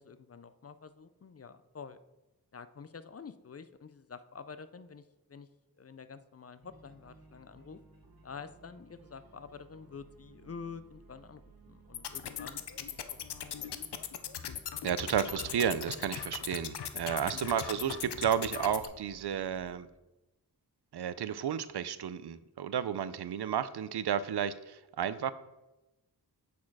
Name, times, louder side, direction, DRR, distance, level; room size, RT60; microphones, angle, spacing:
voice 1, 0.0-2.0 2.5-5.0 5.3-5.5 5.8-7.8 8.2-13.2 17.3-17.6, left 5 dB, 40° left, 13 dB, 0.4 m, -48 dB
sound 1, 6.6-19.7, right 3 dB, 65° right, 1.2 m, -59 dB
sound 2, 11.9-18.9, left 8 dB, 85° left, 0.6 m, -40 dB
voice 2, 14.8-19.9 20.9-25.3, right 8 dB, 80° right, 15 dB, 0.5 m, -32 dB
8.4 x 4.3 x 4.7 m, 0.99 s
wide cardioid pair, 50°, 39 cm